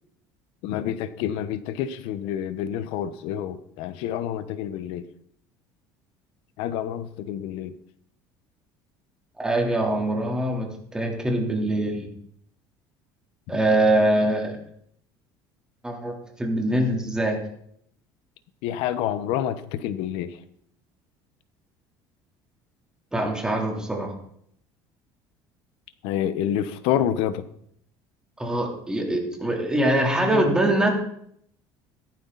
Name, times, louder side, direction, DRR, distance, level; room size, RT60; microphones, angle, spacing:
voice 1, 0.6-5.1 6.6-7.7 18.6-20.4 26.0-27.4 30.2-30.5, left 10 dB, 75° left, 13 dB, 1.1 m, -28 dB
voice 2, 9.4-12.1 13.5-14.5 15.8-17.4 23.1-24.1 28.4-30.9, right 1 dB, 10° right, 1 dB, 3.5 m, -23 dB
16.0 x 13.5 x 4.1 m, 0.68 s
cardioid pair, 135°, 9 cm